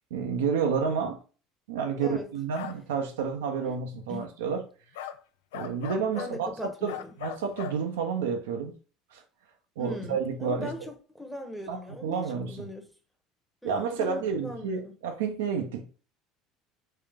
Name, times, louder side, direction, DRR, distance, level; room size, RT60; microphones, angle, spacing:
voice 1, 0.1-1.2 1.7-4.6 5.5-6.9 7.2-8.7 9.1-9.2 9.8-10.9 11.7-12.6 13.6-15.9, right 6 dB, 90° right, 0.6 m, -30 dB
sound 1, 2.5-2.8 4.9-5.2 5.5-6.3 6.9-7.8, left 10 dB, 85° left, 0.3 m, -38 dB
voice 2, 6.2-7.1 9.8-12.9 13.6-14.9, left 1 dB, ahead, 1.0 m, -40 dB
3.3 x 2.8 x 3.5 m
supercardioid pair, 90°, 0 cm